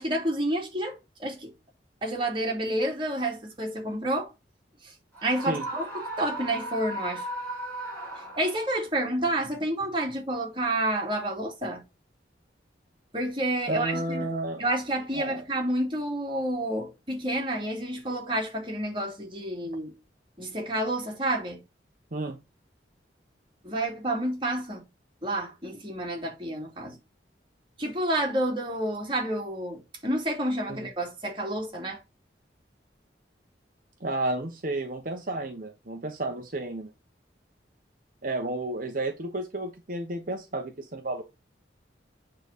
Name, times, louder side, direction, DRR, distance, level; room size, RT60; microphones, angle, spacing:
voice 1, 0.0-1.5 2.0-4.3 4.8-4.9 5.2-5.9 6.2-7.3 8.3-11.8 13.1-14.3 14.6-19.9 20.4-21.6 23.6-24.8 25.2-27.0 27.8-32.0, right 1 dB, 30° right, 2.7 m, -29 dB
Screaming, 5.1-8.8, right 1 dB, 10° left, 5.0 m, -36 dB
voice 2, 13.7-14.6 15.1-15.4 22.1-22.4 34.0-36.9 38.2-41.2, right 2 dB, 50° right, 1.1 m, -32 dB
8.9 x 4.0 x 6.7 m
head